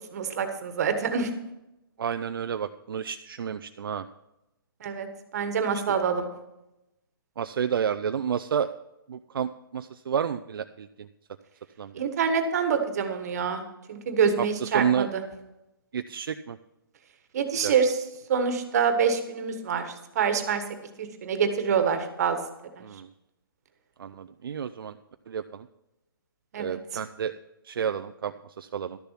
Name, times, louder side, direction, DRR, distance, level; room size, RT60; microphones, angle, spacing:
voice 1, 0.0-1.3 4.8-5.1 5.3-6.3 11.9-13.6 13.9-15.2 17.3-18.0 18.3-20.6 21.0-22.4 22.8-22.9 26.5-26.8, right 6 dB, 45° right, 7 dB, 1.4 m, -26 dB
voice 2, 2.0-4.1 5.7-5.8 7.4-8.7 9.1-11.1 11.8-11.9 14.4-14.5 14.7-15.1 15.9-16.6 17.6-17.7 22.8-23.1 24.0-25.0 25.3-25.7 26.6-27.3 27.6-29.0, right 8 dB, 70° right, 9 dB, 0.5 m, -30 dB
12.5 x 6.9 x 5.8 m, 0.93 s
hypercardioid pair, 160°, 12 cm